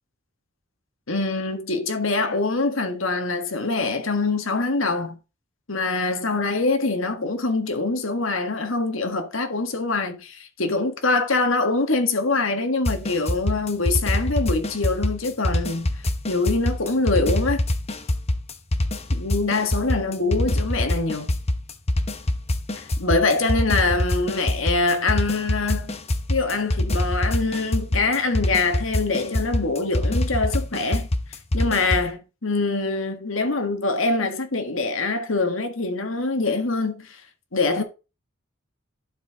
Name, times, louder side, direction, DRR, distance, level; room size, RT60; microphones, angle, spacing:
voice 1, 1.1-5.2 5.7-15.9 16.3-17.6 19.1-21.3 22.8-26.0 26.3-31.1 31.5-37.2 37.5-37.8, left 3 dB, 80° left, 1.7 m, -24 dB
sound 1, 12.8-32.1, left 1 dB, 30° left, 1.0 m, -25 dB
11.0 x 4.8 x 3.7 m
head